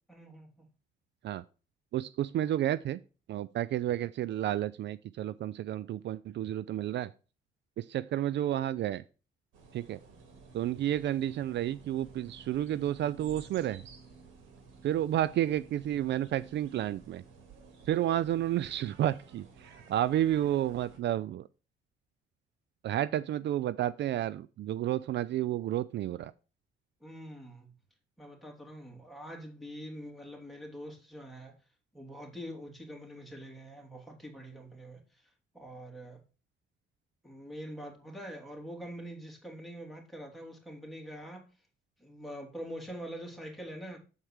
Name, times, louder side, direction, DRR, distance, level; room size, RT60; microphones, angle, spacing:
voice 1, 0.1-0.7 27.0-27.7 28.2-31.5 31.9-35.2 35.5-36.2 37.2-41.4 42.0-44.0, equal, ahead, 2.8 m, -44 dB
voice 2, 1.9-3.0 3.3-7.1 7.8-9.0 9.7-10.0 10.5-13.8 14.8-17.2 17.9-19.5 19.9-21.5 22.8-26.3, right 12 dB, 65° right, 0.4 m, -31 dB
sound 1, 9.5-21.0, right 4 dB, 90° right, 2.0 m, -53 dB
7.3 x 4.5 x 6.4 m
cardioid pair, 90°, 20 cm